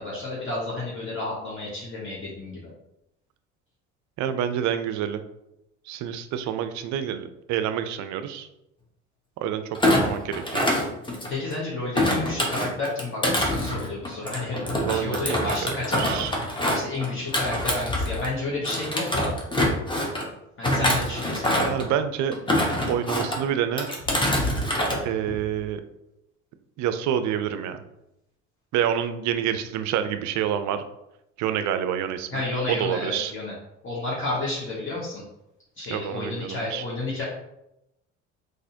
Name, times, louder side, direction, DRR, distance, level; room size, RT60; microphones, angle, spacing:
voice 1, 0.0-2.6 11.3-14.6 14.9-16.3 16.7-19.3 20.6-21.8 32.3-33.5 33.8-35.2 35.8-37.2, left 2 dB, 30° left, -6 dB, 1.2 m, -31 dB
voice 2, 4.2-5.2 5.9-8.5 9.4-10.7 14.7-15.7 16.0-16.3 21.6-22.3 22.9-23.9 25.0-25.8 26.8-27.8 28.7-30.8 31.4-32.4 32.7-33.3 35.9-36.8, right 9 dB, 50° right, 9 dB, 0.5 m, -27 dB
Thump thud, 9.7-11.5 11.9-18.3 18.6-20.2 20.6-21.9 22.3-23.4 23.8-25.0 25.3-25.6, left 1 dB, 15° left, 1.0 m, -25 dB
4.0 x 2.6 x 2.7 m, 0.85 s
hypercardioid pair, 60°, 38 cm